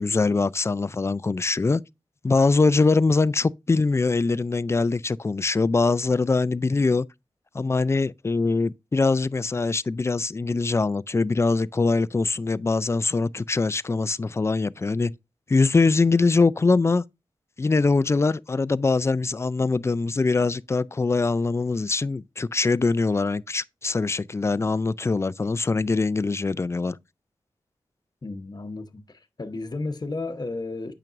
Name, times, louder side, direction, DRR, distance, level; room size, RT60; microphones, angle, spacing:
voice 1, 0.0-1.8 2.2-7.1 7.5-15.1 15.5-17.0 17.6-27.0, left 3 dB, 25° left, 0.3 m, -23 dB
voice 2, 28.2-30.9, left 2 dB, 40° left, 1.0 m, -33 dB
8.9 x 5.9 x 2.5 m
wide cardioid pair, 85°, 10 cm